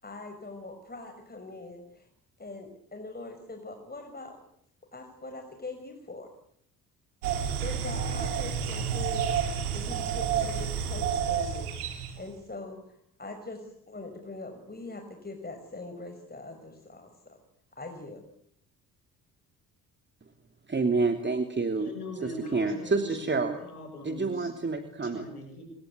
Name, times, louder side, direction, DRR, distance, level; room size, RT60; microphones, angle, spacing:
voice 1, 0.0-2.1 2.4-4.4 4.9-6.3 7.6-9.3 9.7-17.4 17.8-18.2, left 2 dB, 20° left, 5 dB, 5.9 m, -42 dB
sound 1, 7.2-12.2, right 7 dB, 85° right, 3.3 m, -30 dB
voice 2, 20.7-21.9 22.2-23.6 24.0-25.3, right 4 dB, 25° right, 6 dB, 2.9 m, -28 dB
voice 3, 21.8-24.5 25.0-25.6, equal, 90° left, 6 dB, 6.6 m, -40 dB
27.5 x 22.0 x 8.3 m, 0.70 s
hypercardioid pair, 50°, 44 cm